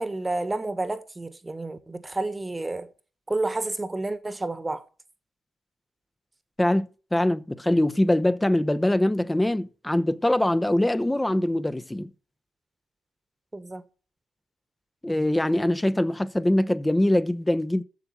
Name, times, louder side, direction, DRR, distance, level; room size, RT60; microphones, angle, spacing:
voice 1, 0.0-2.9 3.3-4.8 13.5-13.8, right 2 dB, 20° right, 1.3 m, -30 dB
voice 2, 6.6-12.1 15.0-17.8, left 1 dB, 10° left, 0.7 m, -23 dB
8.6 x 6.9 x 7.0 m
hypercardioid pair, 50°, 0 cm